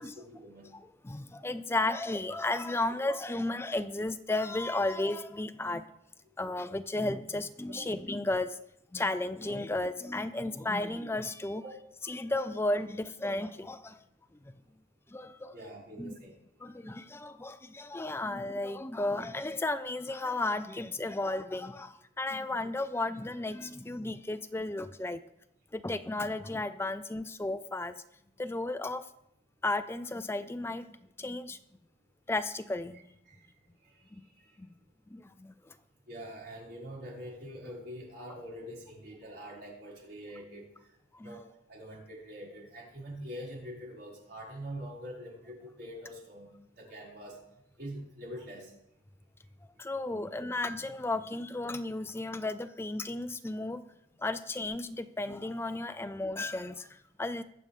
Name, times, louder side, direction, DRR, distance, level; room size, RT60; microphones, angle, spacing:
voice 1, 0.0-0.7 7.7-7.8 11.6-11.7 15.5-16.3 33.3-33.4 36.1-40.7 41.2-46.5 46.8-47.4 47.8-48.7, equal, 65° right, -5 dB, 5.9 m, -44 dB
voice 2, 0.7-5.9 6.4-8.6 8.9-11.6 12.0-14.0 14.5-14.6 15.1-15.6 16.0-16.1 16.6-25.2 25.7-27.9 28.4-29.1 29.6-30.9 31.2-31.6 32.3-33.0 34.1-34.2 34.6-34.7 35.1-35.7 41.1-41.4 49.8-53.8 54.2-57.4, left 2 dB, 15° left, 11 dB, 0.4 m, -34 dB
24.0 x 8.0 x 3.6 m, 0.81 s
head